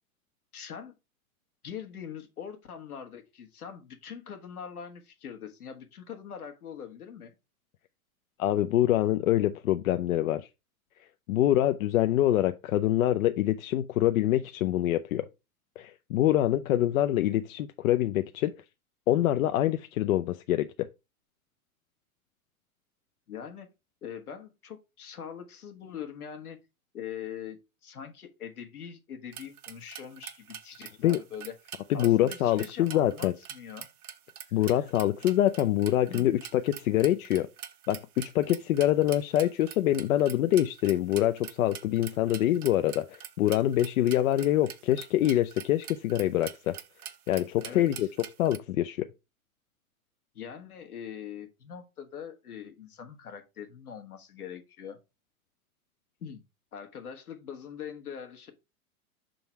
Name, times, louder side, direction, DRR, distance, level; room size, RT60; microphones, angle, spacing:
voice 1, 0.5-1.0 1.6-7.3 23.3-23.7 24.0-26.6 26.9-31.5 31.9-33.9 34.4-34.8 36.1-36.3 47.6-48.1 50.3-55.0 56.2-56.4 56.7-58.5, left 8 dB, 85° left, 1.4 m, -42 dB
voice 2, 8.4-10.5 11.3-15.2 15.8-18.5 19.1-20.7 31.0-31.2 31.9-33.3 34.5-37.5 37.9-46.7 47.3-48.1 48.4-49.0, left 13 dB, 70° left, 0.6 m, -25 dB
sound 1, 29.3-48.6, right 9 dB, 80° right, 0.9 m, -44 dB
5.9 x 3.8 x 4.4 m
hypercardioid pair, 105°, 43 cm